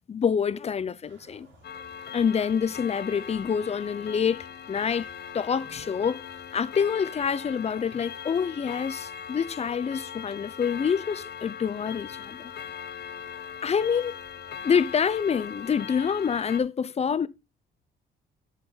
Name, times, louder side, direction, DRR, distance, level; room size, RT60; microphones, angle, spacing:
voice 1, 0.1-1.5 2.1-5.1 5.3-6.2 6.5-12.5 13.6-14.2 14.6-17.3, left 7 dB, 35° left, 0.5 m, -27 dB
sound 1, 1.1-15.9, right 3 dB, 70° right, 4.6 m, -58 dB
Clock, 1.6-16.6, left 8 dB, 55° left, 0.9 m, -40 dB
8.7 x 5.8 x 3.9 m
cardioid pair, 90°, 20 cm